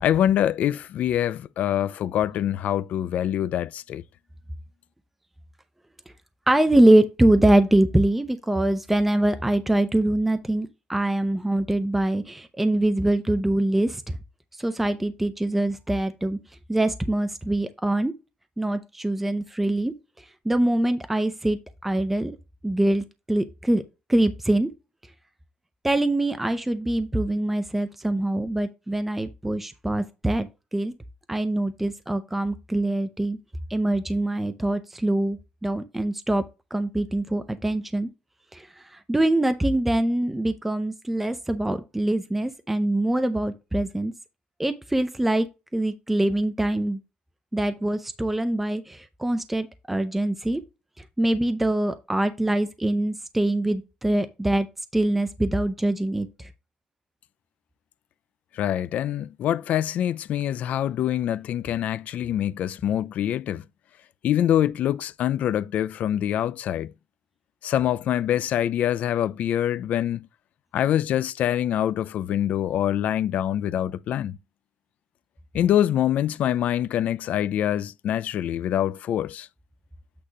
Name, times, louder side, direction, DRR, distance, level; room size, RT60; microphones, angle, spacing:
voice 1, 0.0-4.0 58.5-63.6 64.2-66.9 67.6-70.3 70.7-74.4 75.5-79.5, left 11 dB, 60° left, 0.4 m, -25 dB
voice 2, 6.5-14.1 14.6-16.4 16.7-18.1 18.6-19.9 20.5-22.4 22.6-23.8 24.1-24.7 25.8-30.9 31.3-33.4 33.7-36.4 36.7-38.1 38.5-38.7 39.1-44.1 44.6-45.5 45.7-47.0 47.5-50.6 51.2-54.7 54.9-56.3, right 1 dB, 5° right, 0.5 m, -23 dB
8.5 x 2.9 x 5.0 m
cardioid pair, 165°, 3 cm